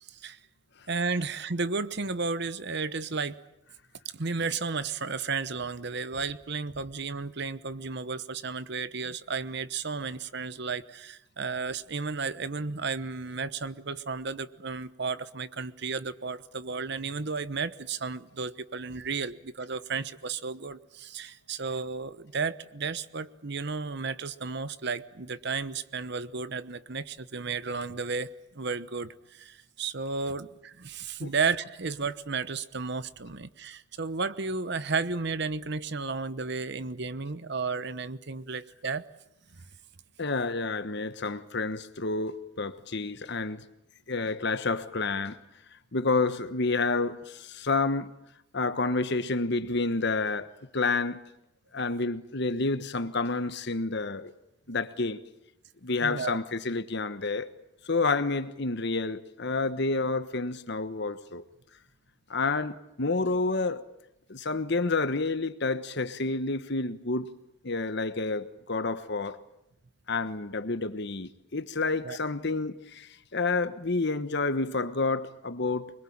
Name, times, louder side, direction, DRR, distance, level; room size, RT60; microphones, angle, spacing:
voice 1, 0.1-0.4 0.9-3.4 4.1-39.1 56.0-56.4 72.0-72.2, right 4 dB, 55° right, 1.0 m, -33 dB
voice 2, 40.2-43.6 44.1-45.4 45.9-48.1 48.5-51.2 51.7-54.3 54.7-55.2 55.8-57.5 57.8-61.4 62.3-63.9 64.3-67.3 67.6-69.4 70.1-75.9, left 3 dB, 55° left, 1.3 m, -29 dB
25.0 x 22.0 x 8.8 m
head